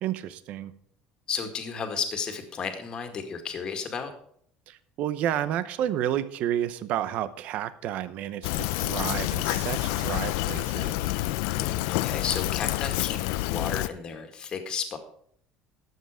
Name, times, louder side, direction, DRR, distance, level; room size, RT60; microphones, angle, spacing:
voice 1, 0.0-0.7 4.7-11.1, right 11 dB, 55° right, 14 dB, 0.8 m, -31 dB
voice 2, 1.3-4.1 11.5-15.0, left 6 dB, 30° left, 6 dB, 2.0 m, -33 dB
Fill (with liquid), 8.4-13.9, left 18 dB, 90° left, 0.5 m, -28 dB
12.5 x 8.2 x 4.9 m, 0.63 s
cardioid pair, 150°, 3 cm